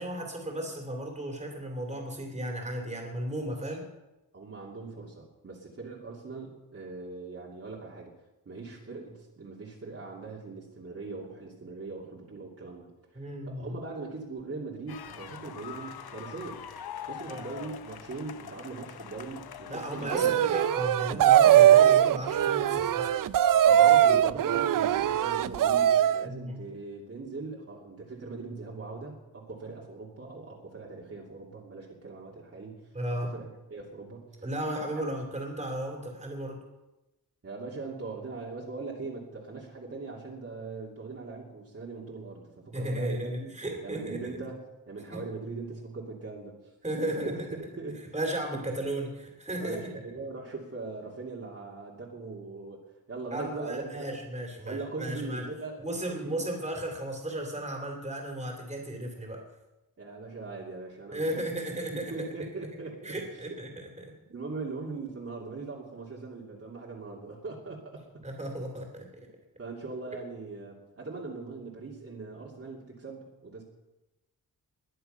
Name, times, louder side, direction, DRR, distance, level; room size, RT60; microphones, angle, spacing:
voice 1, 0.0-3.8 13.1-13.8 17.3-17.4 19.7-23.1 26.2-26.6 32.9-33.3 34.4-36.6 42.7-44.4 45.1-45.2 46.8-47.5 48.1-49.8 53.3-55.4 55.8-59.4 61.1-62.3 63.0-63.7 64.0-64.1 68.2-69.1, right 1 dB, 20° right, 2 dB, 3.0 m, -35 dB
voice 2, 4.3-8.1 8.4-16.6 17.0-20.3 23.6-34.5 37.4-43.5 43.8-46.7 47.1-47.4 47.7-48.2 48.5-48.6 49.6-54.0 54.6-56.5 60.0-61.5 61.9-63.2 63.5-63.6 64.3-68.0 69.6-73.6, right 3 dB, 40° right, -3 dB, 2.6 m, -41 dB
sound 1, 14.9-20.3, left 8 dB, 80° left, 0.9 m, -43 dB
sound 2, 20.1-26.2, right 11 dB, 60° right, 0.5 m, -21 dB
21.0 x 10.0 x 5.6 m, 1.0 s
wide cardioid pair, 165°, 37 cm